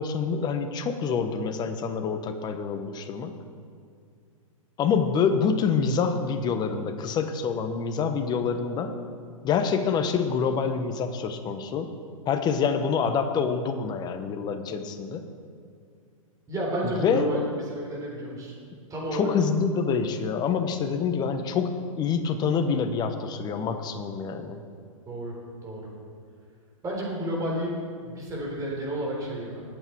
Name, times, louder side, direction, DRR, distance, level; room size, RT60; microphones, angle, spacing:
voice 1, 0.0-3.3 4.8-8.9 9.4-11.9 12.3-15.3 17.0-17.2 19.1-24.6, left 6 dB, 25° left, 8 dB, 1.1 m, -26 dB
voice 2, 16.5-18.5 18.9-19.3 25.1-25.4 25.6-25.9 26.8-29.6, right 1 dB, 20° right, -3 dB, 4.0 m, -31 dB
20.0 x 8.6 x 4.7 m, 2.2 s
hypercardioid pair, 130°, 18 cm